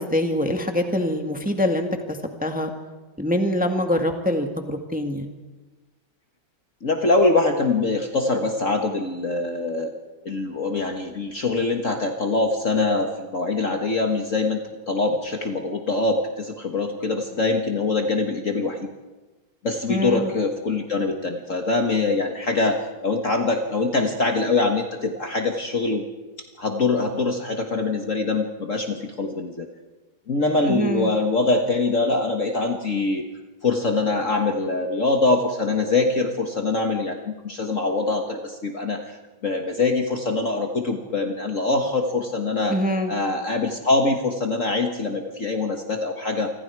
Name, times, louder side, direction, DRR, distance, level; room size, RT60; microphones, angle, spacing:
voice 1, 0.0-1.9 2.4-2.7 3.2-5.3 19.9-20.3 30.7-31.1 42.7-43.1, left 1 dB, 5° right, 4 dB, 1.7 m, -24 dB
voice 2, 6.8-9.9 10.2-14.6 14.9-18.9 19.6-26.0 26.6-29.7 30.3-33.2 33.6-39.2 39.4-42.8 43.1-46.5, left 3 dB, 40° left, 4 dB, 1.6 m, -23 dB
28.0 x 25.5 x 4.7 m, 1.2 s
omnidirectional pair, 2.2 m